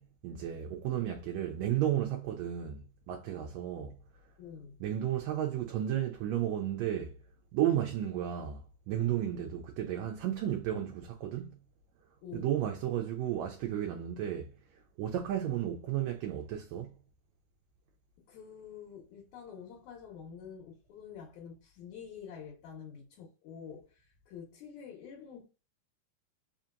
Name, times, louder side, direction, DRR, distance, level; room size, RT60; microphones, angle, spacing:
voice 1, 0.0-4.0 4.8-7.1 7.5-8.6 8.9-11.6 12.3-14.5 15.0-16.9, right 11 dB, 80° right, 1.7 m, -33 dB
voice 2, 4.4-4.8 12.2-12.5 18.3-25.4, left 7 dB, 70° left, 2.4 m, -48 dB
5.0 x 2.8 x 2.4 m
omnidirectional pair, 3.6 m